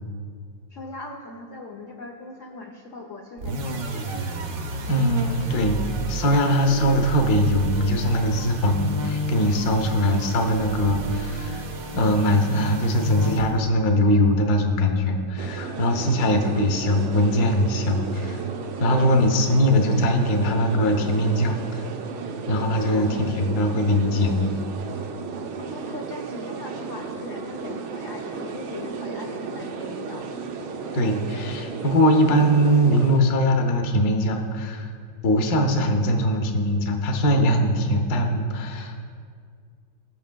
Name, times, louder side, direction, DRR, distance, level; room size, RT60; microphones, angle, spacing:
voice 1, 0.7-4.2 18.9-20.0 22.9-23.2 25.5-30.4, left 2 dB, 75° left, 1 dB, 0.7 m, -40 dB
sound 1, 3.4-13.8, right 2 dB, 60° right, 1.0 m, -31 dB
voice 2, 4.9-5.8 6.1-11.6 11.9-18.4 18.8-21.9 22.5-24.6 30.9-34.9 35.2-39.0, equal, 60° left, 4 dB, 1.2 m, -21 dB
sound 2, 15.4-33.2, right 5 dB, 85° right, 1.6 m, -34 dB
19.0 x 6.5 x 2.2 m, 2.1 s
omnidirectional pair, 2.3 m